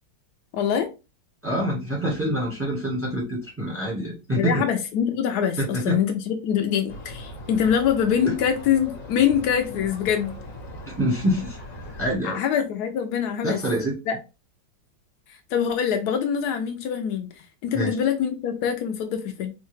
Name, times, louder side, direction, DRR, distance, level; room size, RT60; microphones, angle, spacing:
voice 1, 0.5-0.9 4.3-10.4 12.2-13.6 14.1-14.2 15.3-19.5, left 8 dB, 90° left, 0.8 m, -24 dB
voice 2, 1.4-4.6 5.6-6.0 8.2-8.3 11.0-11.6 12.0-12.4 13.4-14.0 17.7-18.0, equal, 10° right, 0.6 m, -26 dB
sound 1, 6.9-12.2, left 1 dB, 45° left, 0.9 m, -39 dB
3.9 x 2.2 x 3.0 m
omnidirectional pair, 2.2 m